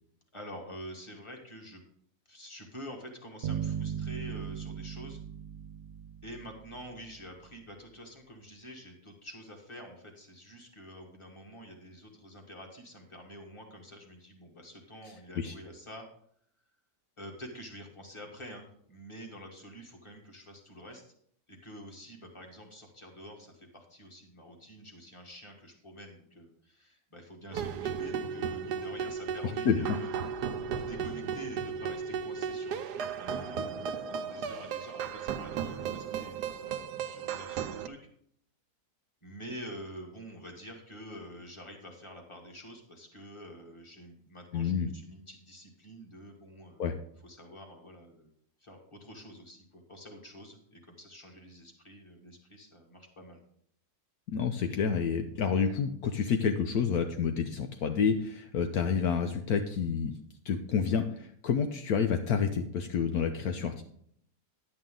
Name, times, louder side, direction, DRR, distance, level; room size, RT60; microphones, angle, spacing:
voice 1, 0.3-1.8 2.3-5.2 6.2-16.1 17.2-21.0 21.5-38.0 39.2-48.3 48.6-53.4, equal, 20° left, 2 dB, 1.8 m, -47 dB
sound 1, 3.4-6.8, right 8 dB, 70° right, 1.5 m, -37 dB
sound 2, 27.5-37.9, right 7 dB, 85° right, 1.2 m, -35 dB
voice 2, 29.6-30.0 44.5-44.9 46.8-47.0 54.3-60.1 60.4-63.8, left 6 dB, 70° left, 6 dB, 1.2 m, -29 dB
10.5 x 8.9 x 3.8 m, 0.67 s
omnidirectional pair, 1.7 m